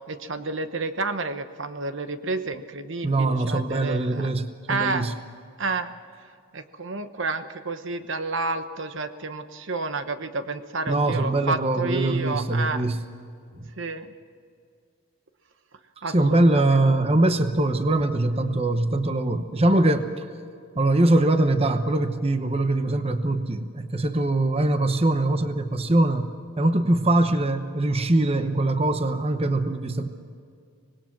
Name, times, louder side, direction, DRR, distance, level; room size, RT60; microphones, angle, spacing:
voice 1, 0.0-4.3 4.7-5.1 5.6-5.9 6.5-12.8 13.8-14.1 16.0-16.8, right 3 dB, 55° right, 9 dB, 1.0 m, -30 dB
voice 2, 3.0-5.1 10.9-13.0 13.6-13.7 16.1-20.3 20.8-26.3 26.6-30.1, right 2 dB, 25° right, 8 dB, 1.0 m, -22 dB
25.5 x 20.0 x 6.0 m, 2.3 s
head